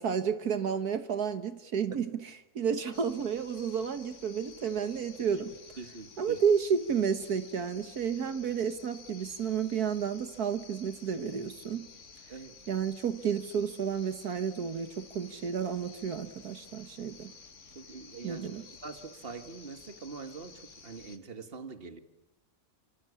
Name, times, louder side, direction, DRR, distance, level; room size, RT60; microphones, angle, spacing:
voice 1, 0.0-5.6 6.2-11.9 12.7-17.3 18.2-18.7, right 7 dB, 75° right, 1.8 m, -31 dB
sound 1, 2.9-21.2, left 4 dB, 50° left, 2.2 m, -53 dB
voice 2, 5.8-6.4 12.3-12.6 17.8-18.5 18.8-22.0, right 4 dB, 35° right, 2.1 m, -44 dB
28.0 x 25.0 x 8.5 m
omnidirectional pair, 1.6 m